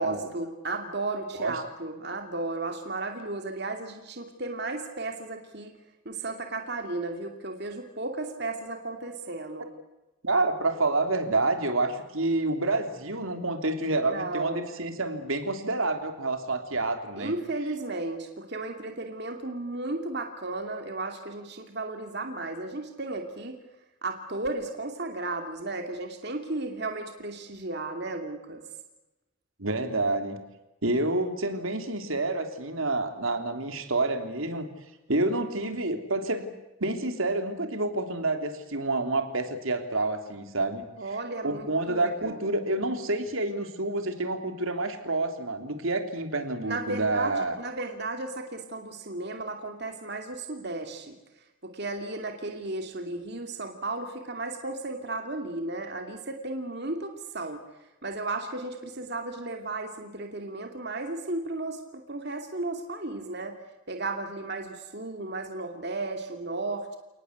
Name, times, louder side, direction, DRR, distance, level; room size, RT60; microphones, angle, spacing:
voice 1, 0.0-5.7 6.0-9.7 14.1-14.7 17.2-23.6 24.0-28.6 41.0-42.4 46.6-51.2 51.6-57.6 58.0-63.6 63.9-67.0, right 2 dB, 50° right, 4 dB, 2.6 m, -34 dB
voice 2, 10.2-17.3 29.6-30.4 30.8-34.7 35.1-36.4 36.8-40.8 41.4-47.6, right 2 dB, 80° right, 6 dB, 3.3 m, -28 dB
29.5 x 19.5 x 8.3 m, 1.0 s
head